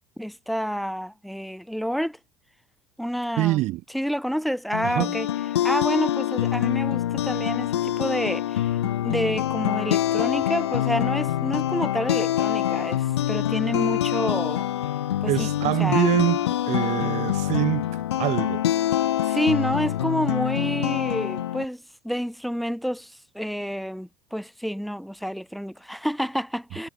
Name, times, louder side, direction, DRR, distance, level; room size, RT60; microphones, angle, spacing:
voice 1, 0.2-2.2 3.0-3.6 3.9-5.3 5.6-8.7 9.0-14.7 15.2-16.2 16.8-17.1 19.2-26.9, equal, ahead, 6.3 m, -29 dB
voice 2, 3.4-3.8 4.8-5.1 15.3-16.4 16.7-18.7, right 17 dB, 55° right, 5.4 m, -24 dB
sound 1, 4.7-21.7, left 12 dB, 80° left, 6.0 m, -25 dB
hypercardioid pair, 75°, 14 cm